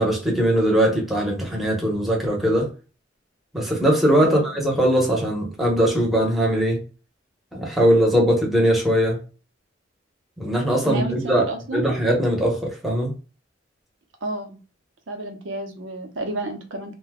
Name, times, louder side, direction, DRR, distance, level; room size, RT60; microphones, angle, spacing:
voice 1, 0.0-2.7 3.5-6.8 7.5-9.2 10.4-11.4 11.7-13.1, equal, ahead, 0.9 m, -20 dB
voice 2, 10.8-11.9 14.2-14.6 15.1-16.9, right 2 dB, 80° right, 0.7 m, -31 dB
2.6 x 2.2 x 3.5 m
head